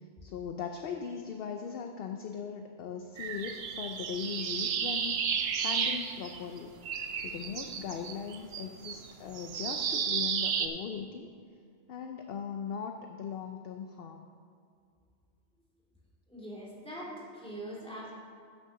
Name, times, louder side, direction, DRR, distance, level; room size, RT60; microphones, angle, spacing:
voice 1, 0.2-5.2 5.6-6.7 7.2-11.3 11.9-14.2, left 7 dB, 60° left, 5 dB, 0.7 m, -39 dB
sound 1, 3.2-6.6 6.8-10.7, right 7 dB, 65° right, 0.8 m, -33 dB
voice 2, 16.3-18.2, right 1 dB, 5° left, -6 dB, 2.4 m, -42 dB
8.4 x 6.8 x 6.4 m, 2.3 s
omnidirectional pair, 1.2 m